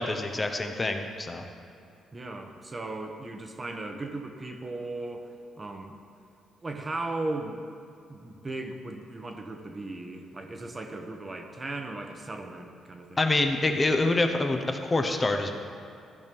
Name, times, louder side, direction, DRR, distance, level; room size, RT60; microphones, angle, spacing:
voice 1, 0.0-1.4 13.2-15.5, left 2 dB, 25° left, 5 dB, 1.0 m, -26 dB
voice 2, 2.1-6.0 6.6-7.7 8.1-13.3, right 2 dB, 30° right, 4 dB, 1.1 m, -37 dB
14.5 x 5.2 x 5.4 m, 2.6 s
cardioid pair, 90°, 0 cm